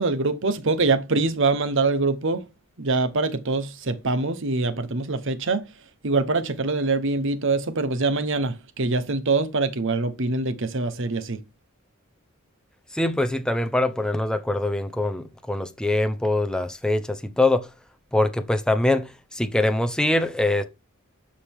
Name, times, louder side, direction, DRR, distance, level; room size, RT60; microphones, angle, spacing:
voice 1, 0.0-2.4 2.8-5.6 6.0-11.4, right 3 dB, 60° right, 1.0 m, -24 dB
voice 2, 12.9-17.7 18.1-20.6, left 2 dB, 5° left, 0.9 m, -23 dB
11.5 x 5.0 x 3.6 m
head